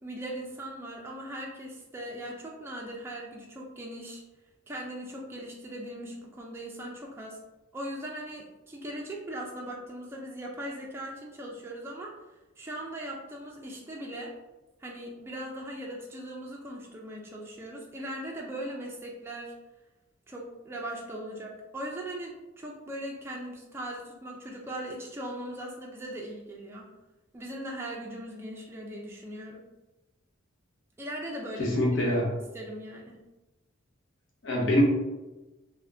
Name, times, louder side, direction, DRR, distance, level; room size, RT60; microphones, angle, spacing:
voice 1, 0.0-4.2 4.7-7.4 7.7-12.1 12.6-14.3 14.8-19.5 20.3-26.9 27.3-29.6 31.0-31.8 32.1-32.2 32.5-33.2, right 1 dB, 10° right, -2 dB, 0.3 m, -39 dB
voice 2, 31.6-32.3 34.4-34.8, left 1 dB, 65° left, -3 dB, 0.7 m, -24 dB
2.4 x 2.1 x 3.3 m, 1.1 s
head